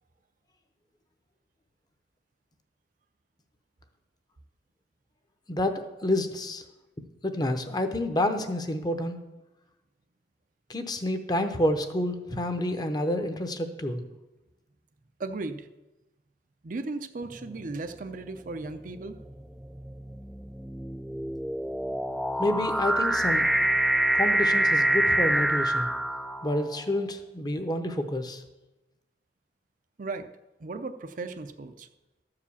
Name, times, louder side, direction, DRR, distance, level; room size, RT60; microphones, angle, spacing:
voice 1, 5.5-6.6 7.2-9.2 10.7-14.0 22.4-23.5 24.2-25.9 26.4-28.4, left 1 dB, 25° left, 7 dB, 0.8 m, -28 dB
voice 2, 15.2-15.7 16.6-19.2 30.0-30.3 30.6-31.9, right 3 dB, 45° right, 8 dB, 0.5 m, -36 dB
sound 1, 17.3-17.7 18.6-26.8, right 1 dB, ahead, 0.3 m, -26 dB
13.0 x 4.9 x 7.0 m, 1.0 s
head